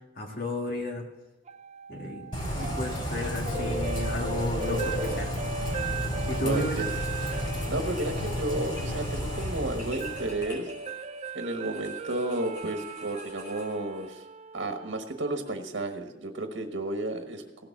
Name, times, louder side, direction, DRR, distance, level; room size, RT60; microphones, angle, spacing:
voice 1, 0.2-1.0 1.9-5.3 6.3-6.8, left 1 dB, 55° left, 1 dB, 1.8 m, -33 dB
sound 1, 1.5-15.6, right 5 dB, 35° right, 0.4 m, -39 dB
Bird / Rain, 2.3-10.5, equal, 30° left, 3.9 m, -32 dB
voice 2, 6.4-6.9 7.7-10.7 11.3-14.2 14.5-17.4, right 2 dB, 85° right, 5 dB, 1.2 m, -32 dB
sound 2, 6.9-14.1, equal, 70° left, 4.8 m, -49 dB
16.5 x 6.8 x 7.1 m, 0.98 s
head